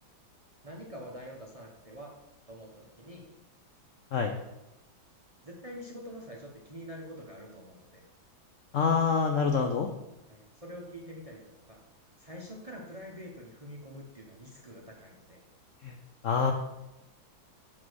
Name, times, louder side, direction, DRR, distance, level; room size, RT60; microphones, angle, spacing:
voice 1, 0.6-2.1 2.5-3.2 5.4-8.0 10.3-11.8 12.2-15.4, equal, 25° right, -1 dB, 0.8 m, -46 dB
voice 2, 8.7-9.9 15.8-16.0 16.2-16.5, left 5 dB, 70° left, 4 dB, 0.7 m, -26 dB
7.6 x 4.2 x 6.3 m, 0.93 s
omnidirectional pair, 2.1 m